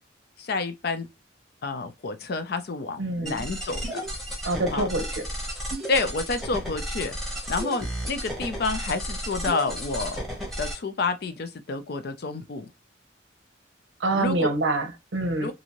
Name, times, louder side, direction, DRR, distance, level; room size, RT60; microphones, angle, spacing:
voice 1, 0.4-1.1 1.6-4.0 4.7-4.9 5.9-7.1 7.5-10.2 10.6-12.7 14.2-14.5 15.4-15.5, left 3 dB, 55° left, 0.4 m, -29 dB
voice 2, 3.0-3.4 4.4-5.2 14.0-15.5, right 2 dB, 80° right, 0.8 m, -26 dB
sound 1, 3.3-10.7, equal, ahead, 0.8 m, -33 dB
2.7 x 2.5 x 2.9 m
head